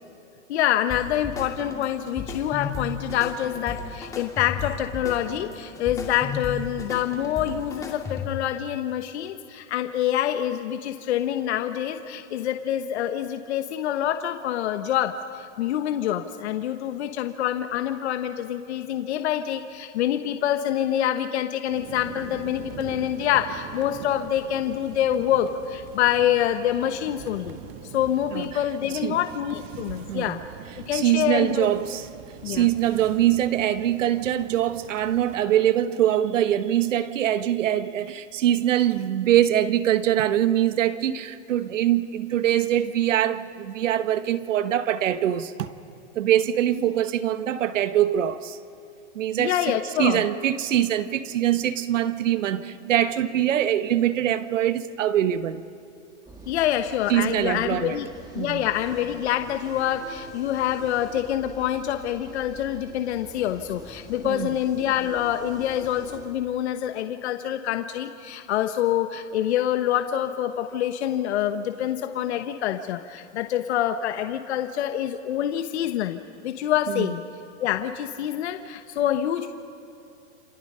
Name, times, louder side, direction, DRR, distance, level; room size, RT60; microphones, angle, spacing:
voice 1, 0.5-27.6 27.8-30.4 30.9-31.7 32.4-32.7 49.4-50.2 56.5-58.1 58.3-77.2 77.6-79.5, left 11 dB, 60° left, 1.2 m, -26 dB
sound 1, 0.9-8.5, left 5 dB, 10° left, 2.3 m, -35 dB
sound 2, 21.7-35.4, right 8 dB, 35° right, 1.6 m, -43 dB
voice 2, 30.9-32.0 32.4-45.7 46.1-48.6 49.1-49.6 50.0-55.6 57.1-58.0 58.4-58.6 64.2-64.5 76.9-77.1, right 11 dB, 80° right, 1.3 m, -23 dB
sound 3, 56.2-66.2, right 2 dB, 10° right, 2.6 m, -45 dB
27.5 x 27.0 x 5.6 m
supercardioid pair, 160°, 37 cm